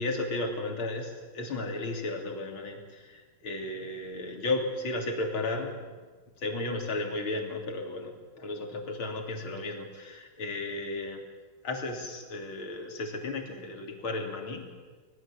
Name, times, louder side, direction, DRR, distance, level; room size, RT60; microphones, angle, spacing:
voice 1, 0.0-5.9 6.4-11.2 11.6-14.7, left 2 dB, 35° left, 2 dB, 3.4 m, -34 dB
25.5 x 20.0 x 7.6 m, 1.4 s
omnidirectional pair, 4.4 m